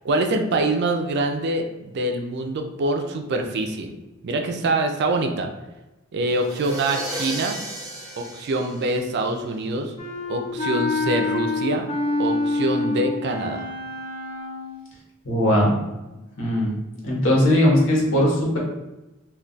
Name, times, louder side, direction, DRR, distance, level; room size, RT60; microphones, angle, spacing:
voice 1, 0.0-3.9 4.2-5.5 6.1-7.6 8.2-9.9 10.3-11.9 12.2-13.7, right 2 dB, 55° right, 4 dB, 0.4 m, -25 dB
sound 1, 6.3-9.5, right 1 dB, 20° right, 0.7 m, -34 dB
Wind instrument woodwind instrument, 10.0-14.8, left 3 dB, 30° left, 0.5 m, -26 dB
voice 2, 15.2-15.7 16.4-16.7 17.0-18.6, left 1 dB, 65° left, -3 dB, 1.0 m, -19 dB
2.3 x 2.3 x 3.8 m, 1.0 s
head